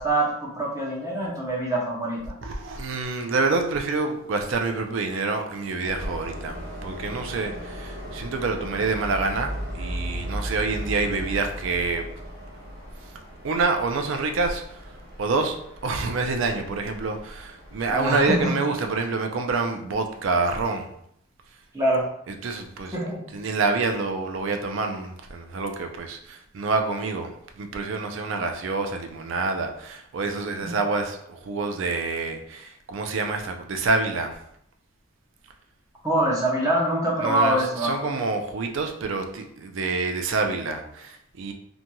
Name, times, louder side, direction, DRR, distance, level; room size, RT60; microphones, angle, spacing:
voice 1, 0.0-2.4 17.9-18.5 21.7-22.1 22.9-23.3 30.6-30.7 36.0-37.9, right 1 dB, 15° right, -5 dB, 0.6 m, -24 dB
voice 2, 2.4-12.0 13.4-14.6 15.2-15.6 15.8-20.9 22.4-22.9 23.3-34.3 37.2-41.5, right 3 dB, 60° right, 5 dB, 0.4 m, -27 dB
Train, 5.8-18.5, equal, 85° right, 1.1 m, -39 dB
sound 1, 8.5-13.0 13.3-13.4, right 1 dB, 30° left, 0.4 m, -36 dB
2.8 x 2.5 x 2.2 m, 0.72 s
head